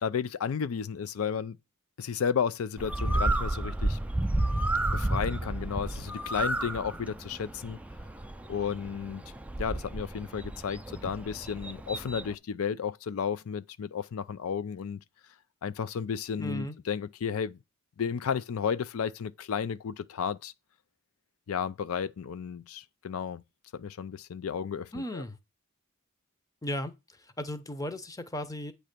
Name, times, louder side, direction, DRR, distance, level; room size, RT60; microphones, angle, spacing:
voice 1, 0.0-1.6 2.0-4.0 4.9-7.8 8.5-9.2 9.6-15.0 15.6-17.6 18.0-20.5 21.5-23.4 23.7-25.2, left 7 dB, 90° left, 0.4 m, -33 dB
Bird, 2.8-12.3, right 2 dB, 5° right, 0.3 m, -32 dB
voice 2, 16.4-16.8 24.9-25.4 26.6-28.7, equal, 15° left, 0.7 m, -36 dB
8.7 x 3.3 x 6.6 m
head